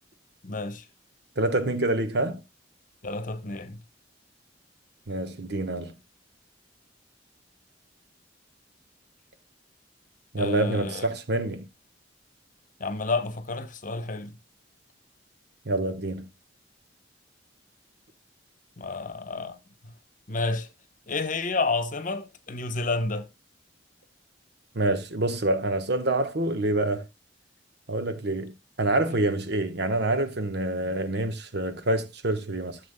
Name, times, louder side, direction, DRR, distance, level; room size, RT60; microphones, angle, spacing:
voice 1, 0.4-0.8 3.0-3.8 10.4-11.1 12.8-14.4 18.8-19.6 19.8-19.9 20.3-20.7 21.1-23.3, left 3 dB, 45° left, 1.0 m, -30 dB
voice 2, 1.4-2.4 5.1-6.0 10.3-11.7 15.6-16.3 24.7-27.1 27.9-32.8, right 2 dB, 65° right, 1.2 m, -27 dB
13.5 x 7.2 x 2.2 m
head